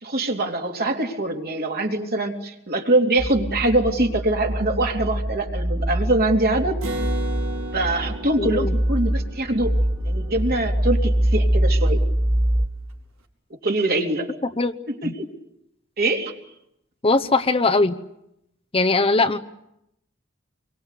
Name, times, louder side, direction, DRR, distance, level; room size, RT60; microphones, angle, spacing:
voice 1, 0.0-6.8 7.7-9.8 10.0-12.0 13.6-14.3 14.9-15.3 16.0-16.4, right 2 dB, 50° right, 2 dB, 3.3 m, -23 dB
sound 1, 3.2-12.7, right 1 dB, 20° right, 2.5 m, -24 dB
Acoustic guitar, 6.8-10.5, right 1 dB, 85° right, 4.9 m, -34 dB
voice 2, 8.4-8.7 14.6-14.7 15.0-15.1 17.0-18.0 18.7-19.4, left 3 dB, 30° left, 8 dB, 1.0 m, -20 dB
26.5 x 23.5 x 8.4 m, 0.82 s
head